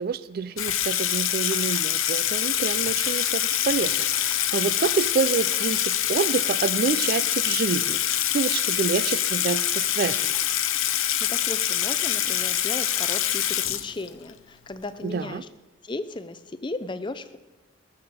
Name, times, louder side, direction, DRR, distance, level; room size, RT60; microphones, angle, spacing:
voice 1, 0.0-10.3 15.0-15.4, right 5 dB, 45° right, 0.3 m, -28 dB
Water tap faucet / Sink (filling or washing), 0.6-14.3, left 11 dB, 85° left, 0.7 m, -25 dB
voice 2, 10.9-15.5 15.8-17.4, left 2 dB, 25° left, 0.5 m, -36 dB
17.5 x 6.9 x 7.0 m
head